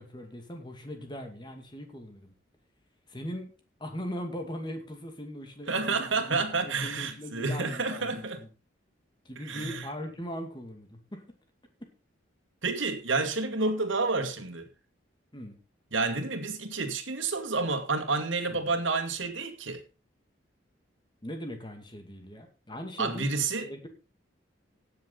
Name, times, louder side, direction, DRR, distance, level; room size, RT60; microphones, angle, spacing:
voice 1, 0.0-2.3 3.1-3.5 3.8-8.5 9.2-11.2 11.8-11.9 15.3-15.6 18.5-18.7 21.2-23.9, equal, 20° left, 2.3 m, -40 dB
voice 2, 5.7-8.4 9.5-9.9 12.6-14.7 15.9-19.8 23.0-23.7, right 3 dB, 70° right, 2.4 m, -29 dB
17.5 x 7.4 x 4.0 m
head